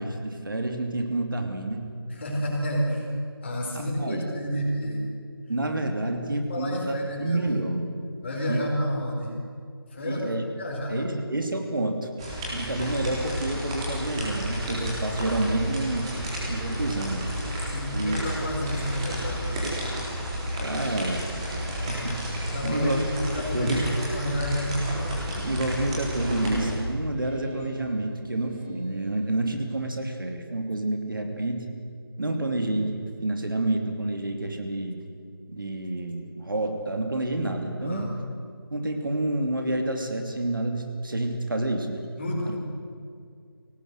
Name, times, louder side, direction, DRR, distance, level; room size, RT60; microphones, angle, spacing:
voice 1, 0.0-1.9 3.7-4.2 5.5-7.8 8.5-8.6 10.0-10.4 10.9-12.1 12.5-16.1 16.5-17.6 17.9-18.2 20.6-21.6 21.9-22.2 22.5-23.0 23.5-23.8 25.4-31.7 32.2-35.0 35.5-38.1 38.7-42.0 42.4-42.6, right 2 dB, 55° right, 4 dB, 3.0 m, -29 dB
voice 2, 2.1-3.1 3.4-5.0 6.4-7.6 8.2-9.4 9.9-10.2 10.5-11.1 17.7-19.7 22.5-23.0 23.3-24.8 37.8-38.1 42.2-42.6, equal, 30° left, -1 dB, 4.7 m, -30 dB
sound 1, 12.2-26.8, equal, 15° right, 3.9 m, -31 dB
sound 2, 26.1-29.9, equal, 30° right, 3.8 m, -42 dB
23.5 x 18.5 x 8.1 m, 2.2 s
figure-of-eight pair, 170°, 13 cm